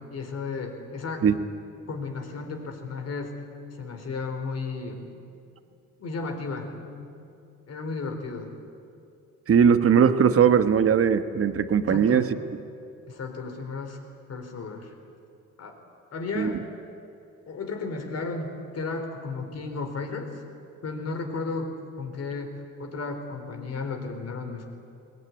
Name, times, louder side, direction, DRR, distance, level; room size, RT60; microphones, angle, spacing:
voice 1, 0.1-1.3 1.9-3.3 3.8-5.1 6.0-6.7 7.0-7.1 7.7-8.5 11.9-12.3 13.1-14.0 14.3-14.9 15.6-15.8 16.1-16.6 17.5-20.3 20.8-22.5 22.8-24.7, left 4 dB, 55° left, 4 dB, 4.2 m, -34 dB
voice 2, 9.5-12.3 16.3-16.5, right 7 dB, 50° right, 10 dB, 1.3 m, -19 dB
21.0 x 20.0 x 9.8 m, 2.7 s
cardioid pair, 90°, 30 cm